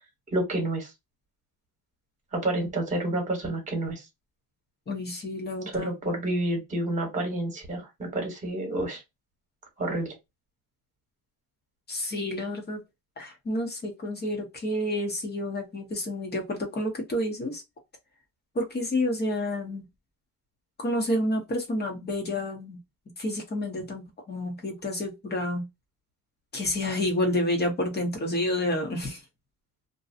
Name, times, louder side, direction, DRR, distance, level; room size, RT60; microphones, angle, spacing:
voice 1, 0.3-0.9 2.3-4.0 5.7-9.0 9.8-10.1, right 1 dB, 20° right, 1.2 m, -29 dB
voice 2, 4.9-5.9 11.9-12.8 13.2-17.6 18.5-19.8 20.8-22.8 23.2-25.6 26.5-29.2, left 1 dB, 30° left, 0.9 m, -29 dB
2.6 x 2.2 x 2.4 m
cardioid pair, 180°, 34 cm